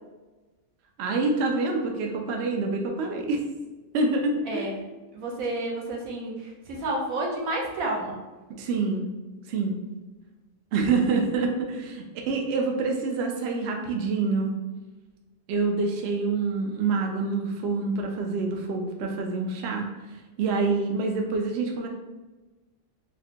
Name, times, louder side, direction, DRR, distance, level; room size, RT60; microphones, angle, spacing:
voice 1, 1.0-3.4 3.9-4.7 8.6-9.1 9.5-9.7 10.7-14.6 15.5-19.9 20.4-21.9, right 3 dB, 65° right, 2 dB, 0.7 m, -26 dB
voice 2, 5.1-8.2, right 2 dB, 85° right, -1 dB, 1.2 m, -30 dB
4.1 x 2.1 x 2.8 m, 1.2 s
omnidirectional pair, 1.4 m